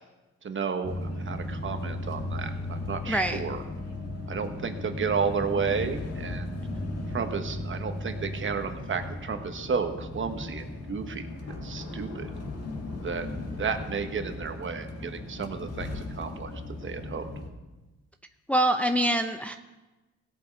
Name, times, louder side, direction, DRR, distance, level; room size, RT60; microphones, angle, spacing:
voice 1, 0.4-3.6 4.3-6.6 7.1-11.3 11.6-12.3 13.0-16.5 16.8-17.2, right 6 dB, 40° right, 7 dB, 1.2 m, -32 dB
sound 1, 0.8-17.5, left 2 dB, 55° left, 1.9 m, -36 dB
voice 2, 3.1-3.4 18.5-19.6, right 1 dB, 5° left, 6 dB, 0.6 m, -25 dB
Thunder, 11.3-15.4, left 2 dB, 75° left, 3.5 m, -48 dB
16.5 x 7.5 x 4.5 m, 1.1 s
cardioid pair, 90°, 30 cm